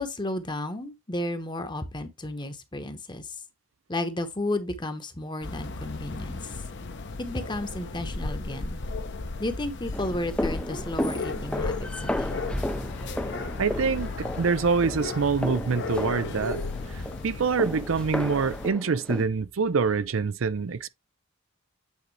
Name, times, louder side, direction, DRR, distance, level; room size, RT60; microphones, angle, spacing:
voice 1, 0.0-3.3 3.9-6.4 7.2-8.8 9.4-12.4, left 1 dB, 20° left, 1.0 m, -33 dB
sound 1, 5.4-18.7, left 3 dB, 55° left, 0.9 m, -35 dB
sound 2, 9.9-19.2, left 1 dB, 5° left, 0.5 m, -34 dB
voice 2, 13.6-16.6 16.9-20.9, right 5 dB, 70° right, 0.5 m, -26 dB
8.6 x 3.9 x 3.2 m
head